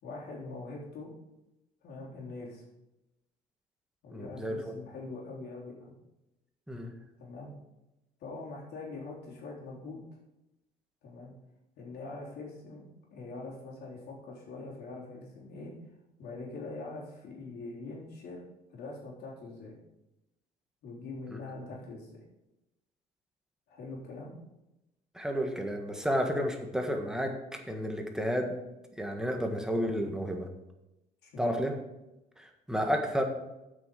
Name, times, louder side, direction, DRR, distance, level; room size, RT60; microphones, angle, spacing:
voice 1, 0.0-1.1 1.8-2.6 4.0-5.9 7.2-7.5 8.2-10.0 11.0-11.3 11.8-12.8 13.1-15.7 16.2-18.4 18.7-19.8 20.8-22.2 23.7-24.3 31.2-31.7, left 3 dB, 75° left, -3 dB, 3.9 m, -43 dB
voice 2, 4.1-4.8 6.7-6.9 25.1-28.6 29.0-30.5 31.4-31.7 32.4-33.2, equal, 5° right, 3 dB, 1.5 m, -31 dB
8.2 x 6.3 x 6.9 m, 0.95 s
cardioid pair, 110°, 17 cm